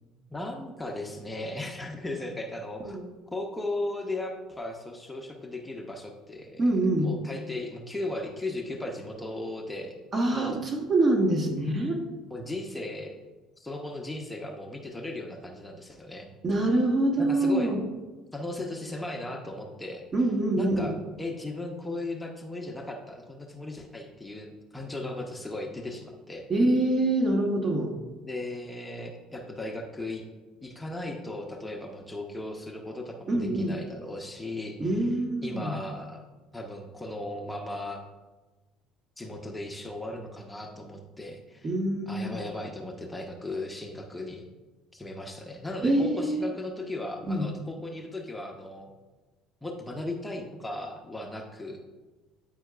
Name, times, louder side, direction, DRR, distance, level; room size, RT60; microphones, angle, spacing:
voice 1, 0.3-3.0 3.3-9.9 10.3-10.6 12.3-13.1 13.6-16.3 17.2-17.7 18.3-20.0 20.6-26.4 28.2-30.3 30.6-35.1 35.4-36.2 36.5-38.0 39.2-41.7 42.1-44.4 44.9-48.9 49.6-51.8, left 2 dB, 15° left, 2 dB, 0.8 m, -37 dB
voice 2, 6.6-7.1 10.1-12.0 16.4-17.8 20.1-20.9 26.5-28.0 33.3-33.8 34.8-35.7 41.6-42.4 45.8-46.5 47.3-47.5, right 1 dB, 40° right, 1 dB, 1.1 m, -25 dB
8.9 x 4.5 x 2.4 m, 1.2 s
hypercardioid pair, 65°, 0 cm